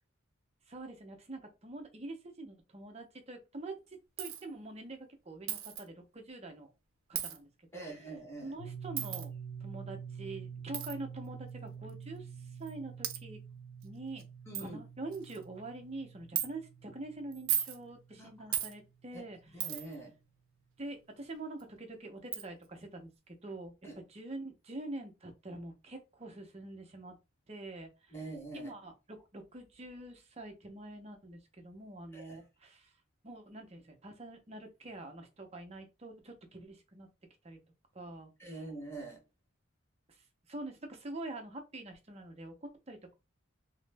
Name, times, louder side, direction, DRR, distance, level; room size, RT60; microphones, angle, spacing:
voice 1, 0.7-6.7 7.1-7.9 8.4-9.3 9.6-13.4 13.8-14.3 14.6-19.7 20.8-23.7 24.1-27.2 27.5-28.1 28.5-32.9 33.2-37.1 37.4-37.6 37.9-38.6 40.1-43.1, right 2 dB, 30° right, 0.6 m, -45 dB
Coin (dropping), 4.2-4.4 5.5-5.8 7.1-7.4 9.0-9.3 10.7-10.9 11.9-12.0 12.7-12.8 13.0-13.2 13.8-13.9 14.2-14.3 14.5-14.7 15.1-15.4 16.4-16.5 17.3-17.8 18.5-18.7 19.6-20.0 21.6-21.7 22.3-22.4, right 11 dB, 90° right, 0.5 m, -35 dB
voice 2, 7.7-8.6 14.5-14.8 18.2-18.3 19.1-19.2 19.5-20.2 23.8-24.0 28.1-28.7 32.1-32.4 38.4-39.2, right 2 dB, 10° left, 0.9 m, -44 dB
sound 1, 8.6-19.2, right 6 dB, 85° left, 0.5 m, -47 dB
3.0 x 2.0 x 3.3 m
head